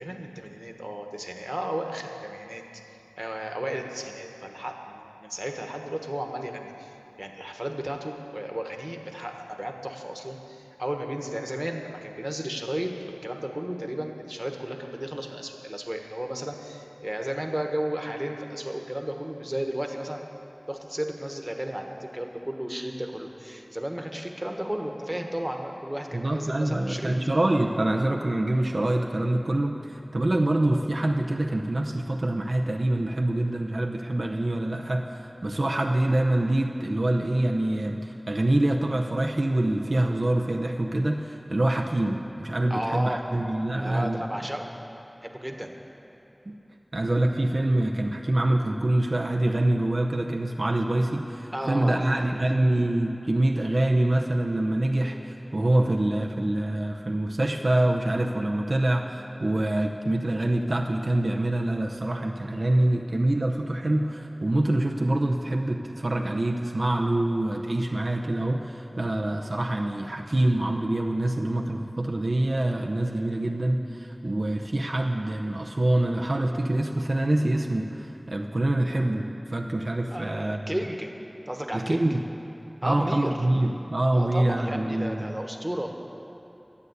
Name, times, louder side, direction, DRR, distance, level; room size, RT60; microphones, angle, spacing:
voice 1, 0.0-2.6 3.2-20.2 20.7-27.2 42.7-43.2 43.7-44.7 45.2-45.7 51.5-52.0 80.1-81.1 81.5-82.1 82.8-83.3 84.1-85.9, equal, 20° right, 3 dB, 1.3 m, -33 dB
voice 2, 26.1-44.2 46.5-46.6 46.9-80.8 81.7-82.2 82.8-85.3, right 1 dB, 75° right, 1 dB, 0.7 m, -25 dB
13.0 x 8.2 x 8.1 m, 2.9 s
wide cardioid pair, 40°, 0 cm